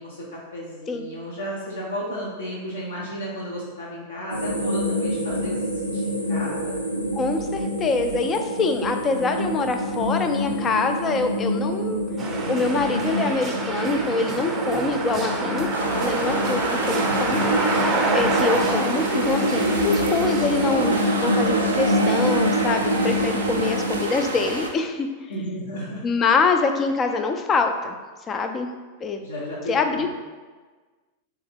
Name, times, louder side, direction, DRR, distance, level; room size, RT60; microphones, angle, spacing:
voice 1, 0.0-6.7 25.3-26.0 29.1-30.1, equal, 70° left, -6 dB, 0.8 m, -34 dB
sound 1, 4.3-24.1, equal, 85° left, 0.5 m, -26 dB
voice 2, 7.1-12.0 12.5-15.7 16.0-17.4 18.1-21.0 21.2-25.1 26.0-28.0 28.3-28.7 29.0-29.2 29.7-30.1, left 4 dB, 25° left, 6 dB, 0.4 m, -24 dB
sound 2, 12.2-21.2, right 3 dB, 20° right, 0.6 m, -28 dB
sound 3, 15.7-24.7, right 2 dB, 70° right, 0.5 m, -29 dB
3.5 x 3.5 x 3.4 m, 1.4 s
figure-of-eight pair, 90°, 0 cm